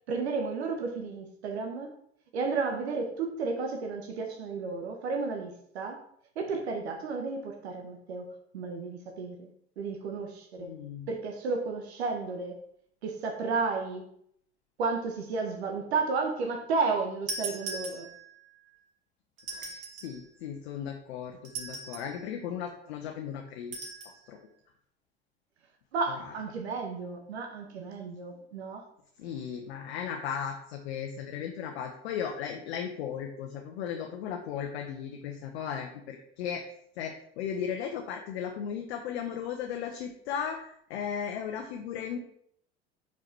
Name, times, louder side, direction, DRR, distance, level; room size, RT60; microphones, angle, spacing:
voice 1, 0.1-1.9 2.3-6.0 6.4-9.5 9.8-10.7 11.1-12.6 13.0-14.1 14.8-18.1 25.9-28.8, right 4 dB, 80° right, 3 dB, 1.0 m, -32 dB
voice 2, 10.6-11.1 19.5-23.8 24.3-24.4 26.1-26.3 29.2-36.6 37.0-42.2, left 8 dB, 70° left, 3 dB, 0.8 m, -36 dB
sound 1, 17.3-18.4 19.4-20.2 21.4-22.2 23.7-24.2, right 4 dB, 50° right, 2.1 m, -39 dB
4.9 x 4.7 x 4.5 m, 0.68 s
hypercardioid pair, 70°, 32 cm